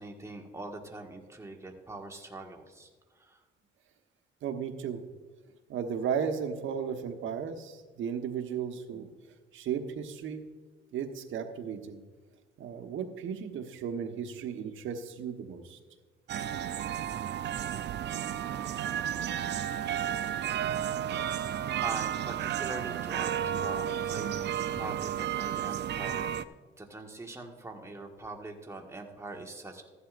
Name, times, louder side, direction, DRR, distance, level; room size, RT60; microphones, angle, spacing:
voice 1, 0.0-3.4 21.8-26.4 26.8-29.8, right 2 dB, 15° right, 2 dB, 1.6 m, -43 dB
voice 2, 4.4-5.0 5.7-9.1 9.5-10.4 10.9-12.0 12.6-15.8, right 7 dB, 75° right, 5 dB, 1.2 m, -35 dB
sound 1, 16.3-26.4, right 10 dB, 60° right, 0.5 m, -32 dB
14.5 x 11.0 x 2.5 m, 1.4 s
cardioid pair, 90°, 20 cm